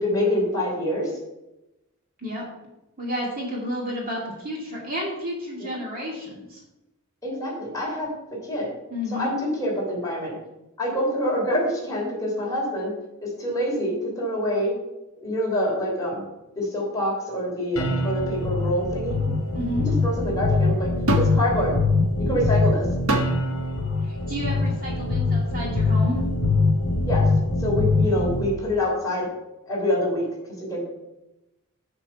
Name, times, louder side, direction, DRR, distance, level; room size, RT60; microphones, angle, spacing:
voice 1, 0.0-1.1 7.2-8.1 8.4-8.7 9.1-10.3 10.8-12.9 13.2-14.7 15.2-16.2 16.5-19.2 20.0-20.9 21.1-21.7 22.2-22.9 27.0-27.3 27.6-29.3 29.7-30.2 30.7-30.9, equal, 15° left, -4 dB, 3.3 m, -26 dB
voice 2, 3.0-6.6 8.9-9.3 19.5-19.9 24.0-26.2, equal, 45° right, -3 dB, 2.2 m, -31 dB
sound 1, 17.8-28.4, left 3 dB, 65° left, 1.3 m, -23 dB
sound 2, 21.1-21.4 23.1-23.4 24.4-24.6, right 2 dB, 70° right, 1.0 m, -24 dB
7.1 x 6.1 x 5.7 m, 0.96 s
head